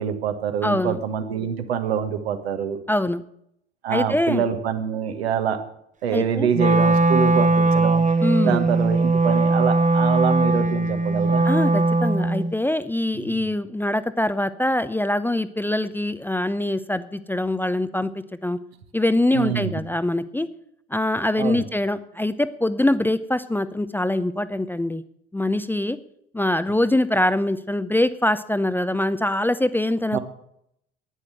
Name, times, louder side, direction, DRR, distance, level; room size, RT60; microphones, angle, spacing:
voice 1, 0.0-2.8 3.8-5.6 6.0-8.1 8.4-11.5 13.1-13.5 19.3-19.7 21.4-21.6 30.1-30.2, right 7 dB, 70° right, 7 dB, 1.6 m, -25 dB
voice 2, 0.6-1.0 2.9-3.2 3.9-4.4 6.1-6.5 8.2-8.7 11.4-18.1 18.4-18.6 18.9-20.5 20.9-25.0 25.3-26.0 26.3-30.2, left 1 dB, 5° left, 13 dB, 0.7 m, -23 dB
Wind instrument woodwind instrument, 6.5-12.5, right 3 dB, 25° right, 1.1 m, -19 dB
11.0 x 9.9 x 7.9 m, 0.73 s
figure-of-eight pair, 60°, 32 cm